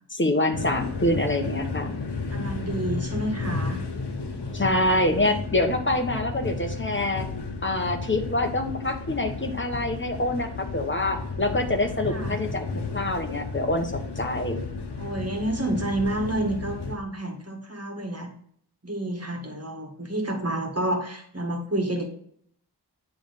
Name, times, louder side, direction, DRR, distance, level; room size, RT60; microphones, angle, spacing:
voice 1, 0.1-2.0 4.5-7.3 7.6-12.6 12.9-14.6, left 1 dB, 30° left, 4 dB, 1.1 m, -26 dB
sound 1, 0.5-17.0, left 3 dB, 70° left, 1.0 m, -33 dB
voice 2, 2.3-3.8 12.0-12.4 15.0-18.3 18.8-22.0, right 1 dB, 35° right, 2 dB, 1.8 m, -29 dB
8.6 x 3.5 x 5.2 m, 0.62 s
wide cardioid pair, 40°, 42 cm